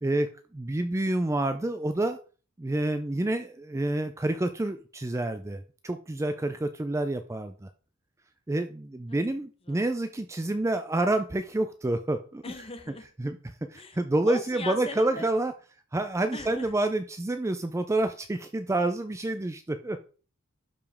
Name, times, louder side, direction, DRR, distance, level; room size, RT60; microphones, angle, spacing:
voice 1, 0.0-2.2 2.6-7.7 8.5-12.4 13.2-13.4 13.7-15.5 15.9-20.0, right 2 dB, 15° right, 9 dB, 0.4 m, -28 dB
voice 2, 12.4-13.1 13.7-14.0 14.3-15.3 16.3-16.7, left 3 dB, 25° left, 8 dB, 1.0 m, -40 dB
11.5 x 5.1 x 3.5 m, 0.39 s
head